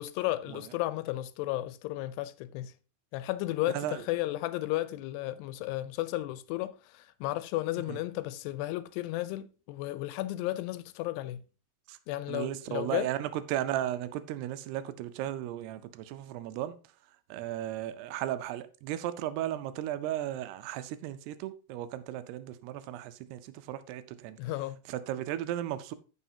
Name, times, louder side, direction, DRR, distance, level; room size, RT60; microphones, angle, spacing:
voice 1, 0.0-2.7 3.1-11.4 12.1-13.1 24.4-24.8, left 16 dB, 85° left, 2.7 m, -33 dB
voice 2, 3.7-4.0 7.9-8.0 11.9-12.0 12.3-16.8 17.3-24.4 24.9-26.0, right 12 dB, 80° right, 2.6 m, -35 dB
14.0 x 5.6 x 2.7 m
omnidirectional pair, 4.8 m